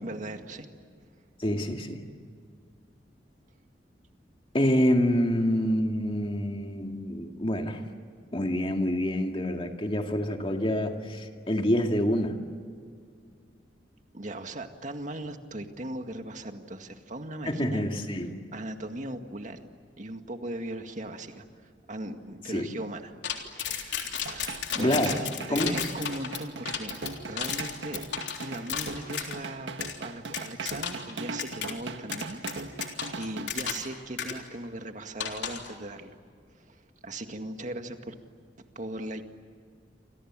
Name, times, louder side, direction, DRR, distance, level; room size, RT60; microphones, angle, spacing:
voice 1, 0.0-0.7 14.1-17.9 18.5-19.7 20.0-21.5 21.9-23.1 23.4-26.9 27.3-28.0 28.4-29.7 30.0-32.4 33.2-36.2 36.5-38.1 38.8-39.2, right 1 dB, 45° right, 6 dB, 2.0 m, -38 dB
voice 2, 1.4-2.0 4.5-7.8 8.3-12.4 17.5-18.3 22.5-22.7 24.8-25.2 25.5-25.7, equal, 30° left, 4 dB, 2.2 m, -27 dB
sound 1, 23.2-29.4 29.8-30.0 30.3-31.1 31.4-31.7 32.1-33.9 34.2-34.3 35.2-35.7, left 8 dB, 80° left, 3.6 m, -33 dB
sound 2, 24.3-33.5, right 3 dB, 90° right, 1.7 m, -39 dB
29.0 x 26.0 x 7.6 m, 2.1 s
head